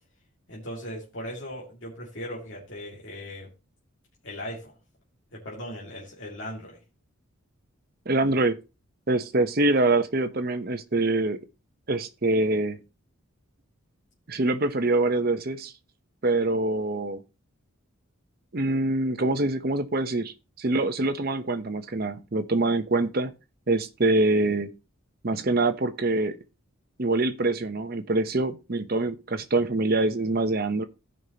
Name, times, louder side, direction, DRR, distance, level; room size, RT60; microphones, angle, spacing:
voice 1, 0.5-3.5 4.2-4.8 5.3-6.8, equal, 60° left, 2.3 m, -38 dB
voice 2, 8.1-8.6 9.1-11.4 11.9-12.8 14.3-15.7 16.2-17.2 18.5-23.3 23.7-24.7 25.2-26.4 27.0-30.8, right 2 dB, 45° right, 0.8 m, -25 dB
16.0 x 5.4 x 2.9 m
head